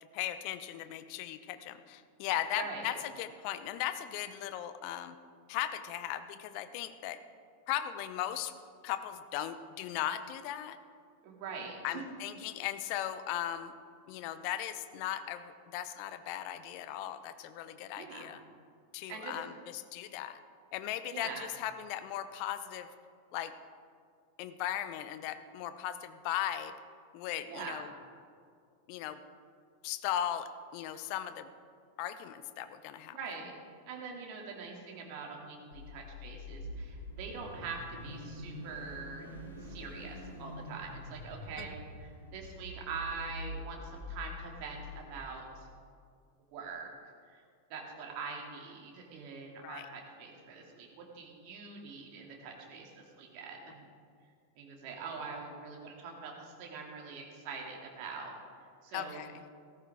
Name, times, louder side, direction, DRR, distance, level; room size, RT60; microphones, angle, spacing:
voice 1, 0.1-5.2 5.5-7.2 7.7-8.5 8.8-10.8 11.8-13.7 14.1-18.4 18.9-20.4 20.7-22.9 23.3-23.5 24.4-26.7 27.1-27.9 28.9-29.2 29.8-31.5 32.0-33.2 41.6-41.7 49.6-49.9 58.9-59.4, left 11 dB, 45° left, 11 dB, 0.8 m, -37 dB
voice 2, 2.6-3.0 11.2-12.0 18.0-18.3 19.1-19.3 21.1-21.4 27.5-27.8 33.1-33.5 33.9-39.3 39.6-45.7 46.5-46.9 47.3-47.4 47.7-52.9 53.2-53.8 54.6-58.3 58.8-59.3, right 5 dB, 45° right, 0 dB, 2.8 m, -43 dB
Car / Idling / Accelerating revving vroom, 35.7-45.1, left 1 dB, 85° left, 4.0 m, -45 dB
16.5 x 14.0 x 3.7 m, 2.2 s
figure-of-eight pair, 90°, 0 cm